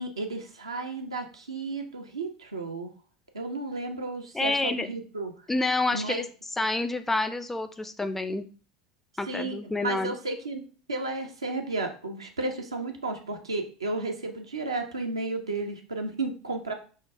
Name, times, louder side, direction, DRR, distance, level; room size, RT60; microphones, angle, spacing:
voice 1, 0.0-2.9 3.3-5.3 5.9-6.3 9.3-10.6 10.9-16.7, right 3 dB, 80° right, 3 dB, 0.7 m, -33 dB
voice 2, 4.3-4.9 5.5-6.2 6.6-8.5 9.2-10.2, left 2 dB, 10° left, 9 dB, 0.4 m, -28 dB
5.6 x 2.3 x 3.3 m, 0.39 s
figure-of-eight pair, 75°, 3 cm